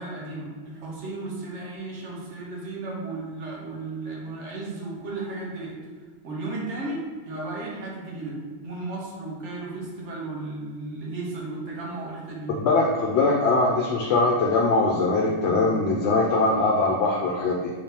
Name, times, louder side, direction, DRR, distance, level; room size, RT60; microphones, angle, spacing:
voice 1, 0.0-5.7 6.2-8.4 8.6-12.6, right 2 dB, 80° right, -3 dB, 1.3 m, -34 dB
voice 2, 12.5-17.7, left 3 dB, 70° left, -1 dB, 0.8 m, -22 dB
5.2 x 3.6 x 2.8 m, 1.5 s
omnidirectional pair, 1.2 m